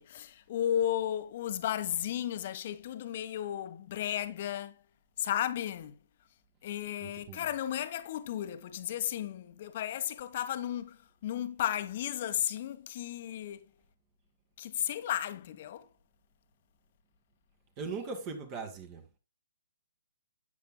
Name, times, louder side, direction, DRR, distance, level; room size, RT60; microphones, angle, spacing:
voice 1, 0.0-4.8 5.2-6.0 6.6-13.6 14.6-15.9, left 11 dB, 40° left, 1.3 m, -34 dB
voice 2, 7.0-7.5 17.8-19.1, right 4 dB, 30° right, 1.9 m, -39 dB
12.5 x 8.6 x 2.3 m
figure-of-eight pair, 130°, 0 cm